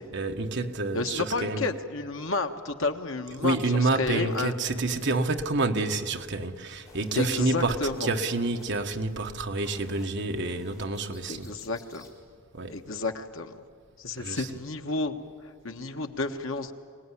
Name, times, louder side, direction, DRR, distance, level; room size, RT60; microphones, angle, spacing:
voice 1, 0.1-1.6 3.4-11.5 12.5-12.8 14.2-14.5, right 3 dB, 60° right, 1.4 m, -28 dB
voice 2, 0.9-4.5 7.1-8.1 11.3-12.1 12.7-13.6 14.0-16.7, left 3 dB, 70° left, 1.4 m, -31 dB
sound 1, 6.8-12.1, left 1 dB, 15° left, 5.1 m, -52 dB
25.5 x 18.5 x 9.9 m
head